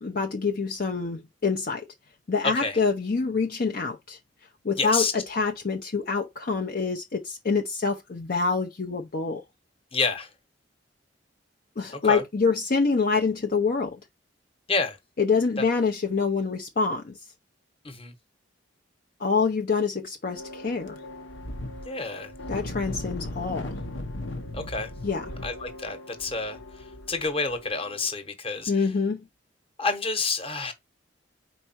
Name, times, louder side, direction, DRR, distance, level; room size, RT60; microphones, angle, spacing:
voice 1, 0.0-1.9 2.3-4.2 4.6-9.4 11.8-14.0 15.2-17.2 19.2-21.0 22.5-23.8 25.0-25.3 28.7-29.3, left 4 dB, 50° left, 0.7 m, -26 dB
voice 2, 2.4-2.8 4.8-5.1 9.9-10.3 11.9-12.2 14.7-15.0 15.6-15.7 17.8-18.1 21.8-22.3 24.5-24.9 25.4-26.6 27.1-28.7 29.8-30.7, left 4 dB, 30° left, 1.2 m, -28 dB
sound 1, 20.3-28.1, left 1 dB, 85° left, 1.0 m, -38 dB
4.8 x 4.4 x 4.5 m
head